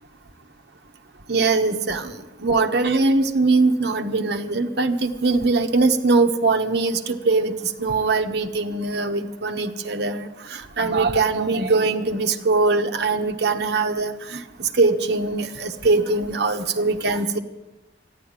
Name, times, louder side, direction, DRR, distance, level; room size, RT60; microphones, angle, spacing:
voice 1, 1.3-17.4, right 3 dB, 60° right, 4 dB, 1.1 m, -22 dB
13.5 x 10.5 x 8.9 m, 1.1 s
head